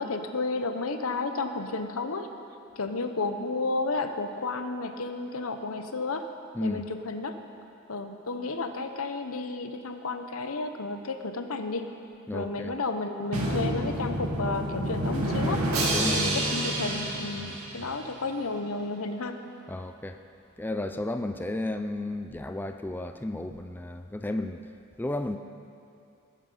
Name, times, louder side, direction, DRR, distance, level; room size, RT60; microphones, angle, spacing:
voice 1, 0.0-2.3 2.8-6.3 6.6-7.4 7.9-11.9 12.3-15.6 16.1-19.4, left 3 dB, 80° left, 7 dB, 0.9 m, -32 dB
voice 2, 12.3-12.7 15.9-16.4 17.4-17.6 19.7-20.2 20.6-24.7 25.0-25.4, left 1 dB, 10° left, 7 dB, 0.3 m, -33 dB
Drum, 13.3-18.2, right 1 dB, 90° right, 2.0 m, -29 dB
19.0 x 8.5 x 5.5 m, 2.6 s
head